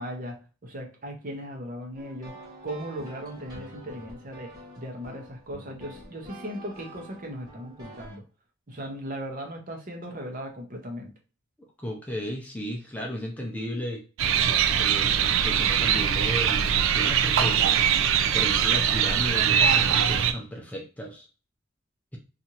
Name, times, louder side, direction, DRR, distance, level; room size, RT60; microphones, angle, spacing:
voice 1, 0.0-2.3 2.6-8.2 8.7-11.1, equal, 40° right, 0.7 m, -37 dB
sound 1, 1.9-8.2, equal, 20° right, 1.1 m, -46 dB
voice 2, 11.8-14.0 14.8-18.1 18.3-21.3, equal, 10° left, 0.5 m, -34 dB
sound 2, 14.2-20.3, right 8 dB, 70° right, 0.3 m, -22 dB
2.7 x 2.5 x 2.8 m
head